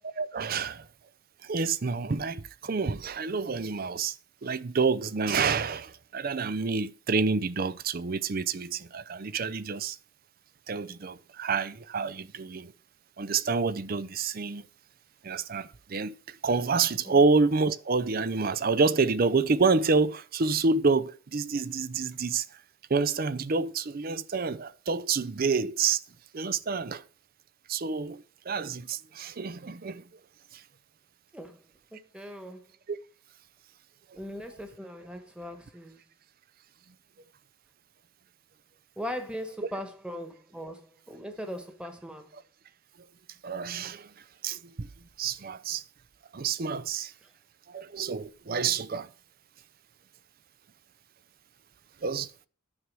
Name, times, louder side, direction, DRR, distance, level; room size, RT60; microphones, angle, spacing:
voice 1, 0.1-0.9 1.4-4.2 4.4-10.0 10.7-12.7 13.2-14.7 15.2-22.6 22.9-26.0 26.3-27.0 27.7-30.0 30.5-30.6 32.9-33.0 42.3-42.4 43.4-44.1 44.4-44.9 45.2-45.8 46.3-47.1 47.7-49.1 52.0-52.5, right 4 dB, 45° right, 0.5 m, -28 dB
voice 2, 31.9-32.6 34.1-36.0 39.0-42.3, equal, 5° right, 1.4 m, -39 dB
9.8 x 6.1 x 6.2 m
head